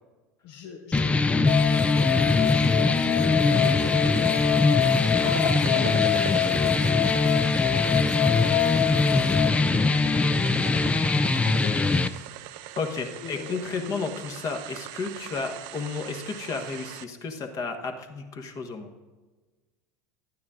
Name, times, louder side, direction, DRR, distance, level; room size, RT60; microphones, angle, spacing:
voice 1, 0.4-4.8 5.2-12.8 13.1-14.1, left 6 dB, 60° left, 3 dB, 0.9 m, -40 dB
sound 1, 0.9-12.1, left 3 dB, 15° left, 0.4 m, -22 dB
sound 2, 1.5-9.5, left 14 dB, 80° left, 0.6 m, -27 dB
sound 3, 3.5-17.0, right 13 dB, 60° right, 0.5 m, -41 dB
voice 2, 12.8-18.9, left 4 dB, 40° left, 4 dB, 1.3 m, -32 dB
11.0 x 9.3 x 3.7 m, 1.3 s
hypercardioid pair, 85°, 9 cm